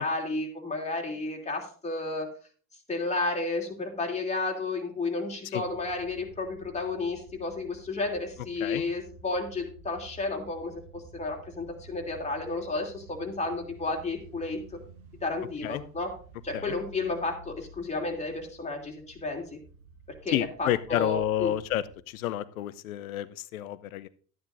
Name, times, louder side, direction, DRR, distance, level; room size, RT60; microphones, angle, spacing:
voice 1, 0.0-2.3 2.9-14.6 15.2-16.1 16.4-19.6 20.2-21.5, left 3 dB, 15° left, 0 dB, 2.8 m, -32 dB
sound 1, 5.6-22.0, right 3 dB, 75° right, 1.6 m, -51 dB
voice 2, 20.3-24.1, left 13 dB, 75° left, 17 dB, 0.7 m, -30 dB
12.5 x 9.5 x 2.6 m, 0.42 s
hypercardioid pair, 75°, 42 cm